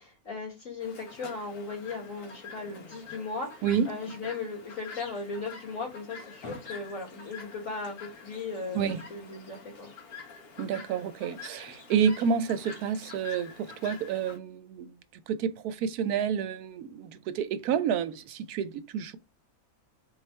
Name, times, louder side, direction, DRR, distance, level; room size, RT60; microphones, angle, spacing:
voice 1, 0.0-8.8 9.1-9.9, left 4 dB, 60° left, 2.4 m, -37 dB
Chirp tweet, 0.8-14.4, left 4 dB, 80° left, 1.5 m, -46 dB
voice 2, 8.7-9.1 10.6-14.9 15.3-19.2, right 7 dB, 90° right, 1.1 m, -29 dB
4.0 x 2.4 x 4.3 m
omnidirectional pair, 1.6 m